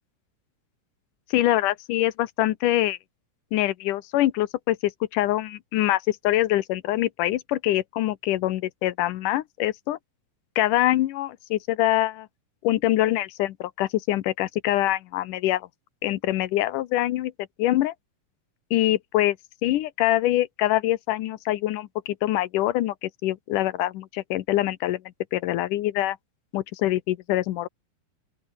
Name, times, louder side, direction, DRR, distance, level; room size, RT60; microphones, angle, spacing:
voice 1, 1.3-3.0 3.5-10.0 10.6-12.3 12.6-15.7 16.0-17.3 17.6-17.9 18.7-19.4 19.6-25.0 25.3-26.2 26.5-27.7, left 15 dB, 75° left, 2.3 m, -24 dB
open air
omnidirectional pair, 4.1 m